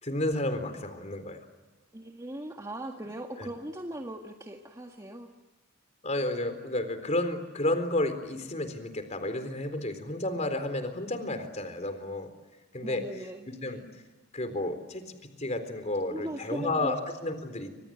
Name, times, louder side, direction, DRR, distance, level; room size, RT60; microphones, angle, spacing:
voice 1, 0.0-1.4 3.4-3.5 6.0-12.3 12.7-13.0 13.6-13.8 14.3-15.0 15.4-17.7, left 1 dB, 35° left, 8 dB, 4.0 m, -31 dB
voice 2, 1.9-5.3 12.8-13.8 16.1-17.0, right 1 dB, 20° right, 2 dB, 1.8 m, -39 dB
29.0 x 26.5 x 7.8 m, 1.2 s
head